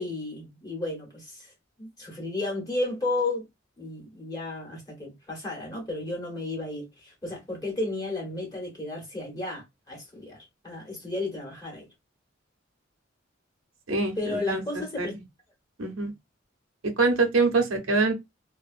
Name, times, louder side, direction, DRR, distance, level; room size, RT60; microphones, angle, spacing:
voice 1, 0.0-1.5 1.8-3.4 3.8-11.9 14.2-15.1, left 2 dB, 20° left, 1.1 m, -33 dB
voice 2, 13.9-15.1 15.8-16.1 16.8-18.1, right 3 dB, 80° right, 0.7 m, -25 dB
2.9 x 2.2 x 2.5 m
head